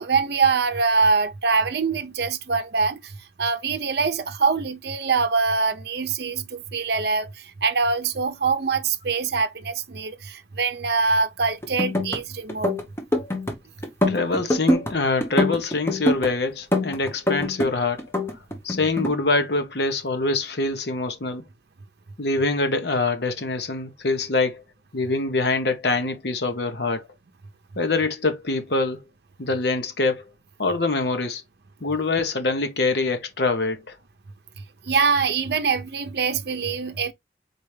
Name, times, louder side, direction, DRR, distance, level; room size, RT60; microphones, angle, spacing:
voice 1, 0.0-3.1 3.4-12.8 34.8-37.1, right 4 dB, 65° right, 0.6 m, -24 dB
sound 1, 11.6-12.2 12.5-13.6 13.8-14.9 15.2-16.3 16.7-17.7 18.0-19.1, left 1 dB, 15° left, 0.9 m, -24 dB
voice 2, 14.1-18.0 18.6-21.4 22.2-24.6 24.9-27.0 27.8-29.0 29.4-30.2 30.6-31.4 31.8-33.9, left 3 dB, 70° left, 1.0 m, -24 dB
4.3 x 3.3 x 3.2 m
head